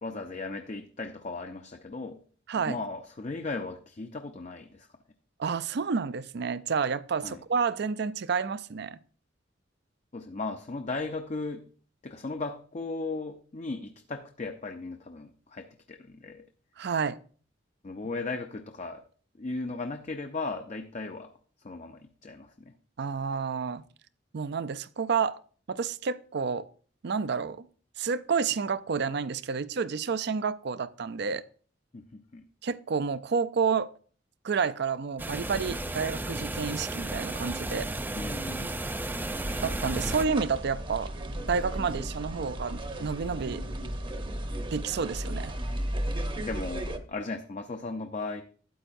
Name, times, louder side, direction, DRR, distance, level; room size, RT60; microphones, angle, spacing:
voice 1, 0.0-2.2 2.5-4.9 7.2-7.4 10.1-11.6 12.0-16.4 17.8-19.0 19.4-21.3 21.6-22.7 31.9-32.4 38.1-38.8 46.4-48.4, left 3 dB, 40° left, 0.6 m, -36 dB
voice 2, 5.4-9.0 16.8-17.2 23.0-23.8 24.3-25.4 25.7-26.7 27.0-27.7 28.0-31.4 32.6-33.9 34.4-37.9 39.6-41.1 41.5-43.6 44.7-45.5, right 5 dB, 60° right, 0.5 m, -30 dB
sound 1, 35.2-40.2, right 1 dB, 10° right, 0.5 m, -34 dB
sound 2, 39.3-47.0, right 1 dB, 30° right, 0.8 m, -35 dB
12.5 x 8.8 x 2.6 m
head